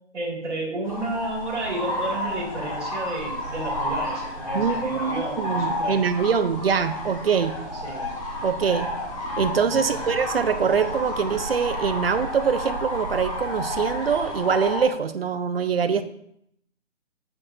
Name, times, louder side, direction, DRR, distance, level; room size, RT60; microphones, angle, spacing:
voice 1, 0.1-6.0 7.8-8.1 9.7-10.1, right 2 dB, 65° right, -1 dB, 2.0 m, -32 dB
sound 1, 0.8-14.8, left 1 dB, 30° left, 1.1 m, -31 dB
sound 2, 1.5-11.5, left 1 dB, 65° left, 2.1 m, -46 dB
voice 2, 4.5-7.6 8.4-8.9 9.4-16.0, right 6 dB, 50° right, 10 dB, 0.5 m, -24 dB
sound 3, 6.6-14.4, right 2 dB, 10° right, 0.7 m, -41 dB
8.6 x 6.1 x 2.6 m, 0.74 s
hypercardioid pair, 175°, 37 cm